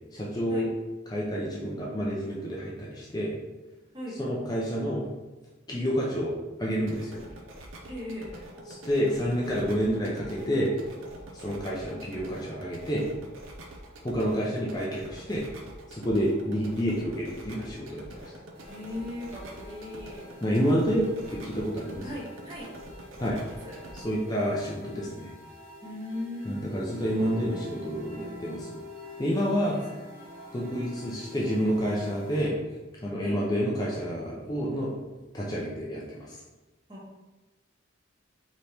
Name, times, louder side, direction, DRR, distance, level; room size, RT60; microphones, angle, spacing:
voice 1, 0.1-0.7 1.1-3.3 4.2-5.0 5.7-7.2 8.7-10.7 11.3-13.1 14.0-15.4 15.9-18.3 20.4-22.1 23.2-23.4 23.9-25.3 26.5-28.7 29.2-29.8 30.5-32.6 33.0-34.9 35.3-36.4, equal, 20° left, -5 dB, 0.5 m, -29 dB
sound 1, 6.8-24.0, right 1 dB, 80° right, 0.6 m, -46 dB
voice 2, 7.9-8.3 16.4-16.7 18.7-20.3 22.0-22.7 23.2-23.8 25.8-26.6 29.4-29.8 33.2-33.4 36.9-37.2, left 1 dB, 20° right, -5 dB, 1.0 m, -39 dB
sound 2, 18.5-32.5, left 1 dB, 50° right, 0.9 m, -47 dB
3.3 x 3.0 x 4.2 m, 1.1 s
head